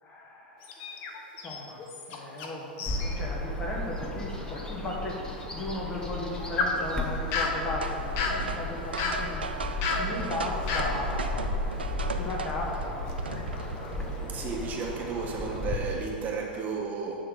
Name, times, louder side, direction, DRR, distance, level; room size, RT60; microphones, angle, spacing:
voice 1, 0.0-1.1 1.4-5.2 5.5-9.4 9.9-11.5 12.1-13.1, left 1 dB, 30° left, -1 dB, 1.6 m, -36 dB
sound 1, 0.6-2.5 2.8-3.2 3.6-3.7 4.3-4.4 6.0-12.6 13.1-14.6 15.1-15.4 15.8-16.6, left 3 dB, 45° left, 1.0 m, -35 dB
Bird vocalization bird call bird song, 2.9-15.8, left 2 dB, 15° left, 1.1 m, -34 dB
sound 2, 7.8-14.0, right 5 dB, 85° right, 0.5 m, -38 dB
voice 2, 14.0-17.2, right 5 dB, 30° right, -1 dB, 1.3 m, -33 dB
9.5 x 3.6 x 6.5 m, 2.3 s
hypercardioid pair, 100°, 5 cm